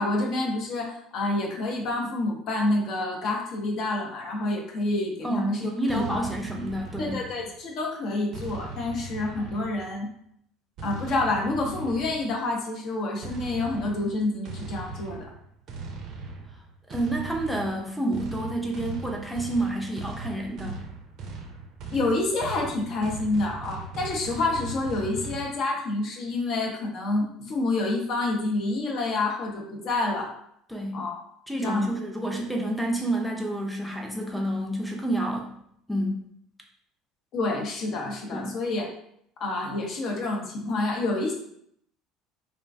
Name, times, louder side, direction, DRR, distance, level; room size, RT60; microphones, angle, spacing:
voice 1, 0.0-6.2 7.0-10.1 10.8-15.3 21.9-30.3 30.9-31.1 31.6-31.9 37.3-38.9 39.4-41.3, left 2 dB, 55° left, 0 dB, 0.6 m, -28 dB
voice 2, 5.2-7.2 16.9-20.8 30.7-31.0 31.5-35.5 35.9-36.2 38.3-38.6, right 1 dB, ahead, 0 dB, 0.4 m, -29 dB
sound 1, 5.9-7.6 8.3-10.1 10.8-12.4 13.2-25.5, right 3 dB, 55° right, 0.4 m, -39 dB
2.4 x 2.2 x 2.4 m, 0.71 s
hypercardioid pair, 70°, 0 cm